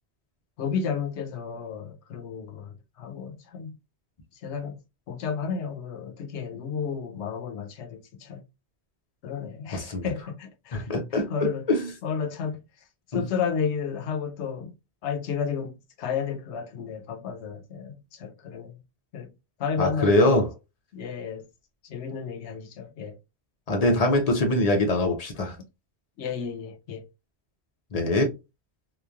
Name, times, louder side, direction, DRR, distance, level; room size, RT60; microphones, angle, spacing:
voice 1, 0.6-3.7 4.4-4.8 5.1-8.4 9.2-10.9 11.3-11.7 12.0-12.6 13.1-14.7 15.0-18.8 19.1-19.3 19.6-20.4 20.9-21.4 21.8-23.2 26.2-27.1, left 6 dB, 90° left, 0.9 m, -32 dB
voice 2, 9.7-10.1 10.7-11.3 11.7-11.9 13.1-13.2 19.8-20.5 23.7-25.6 27.9-28.3, left 1 dB, 45° left, 0.6 m, -23 dB
3.0 x 2.2 x 2.3 m
omnidirectional pair, 1.1 m